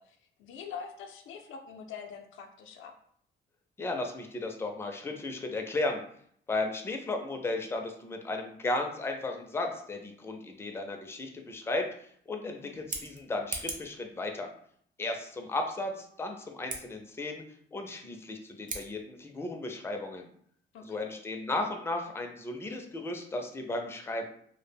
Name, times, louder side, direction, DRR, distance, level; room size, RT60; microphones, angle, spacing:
voice 1, 0.0-2.9 12.4-12.8 20.7-21.1, left 6 dB, 80° left, 4 dB, 0.4 m, -45 dB
voice 2, 3.8-6.0 6.5-11.9 12.3-14.5 15.0-17.4 17.7-20.3 20.8-24.2, left 2 dB, 10° left, 3 dB, 0.4 m, -35 dB
Scissors, 12.7-14.0 16.6-16.8 18.6-18.9, right 3 dB, 40° right, 0.6 m, -38 dB
2.1 x 2.0 x 3.3 m, 0.64 s
cardioid pair, 90°, 20 cm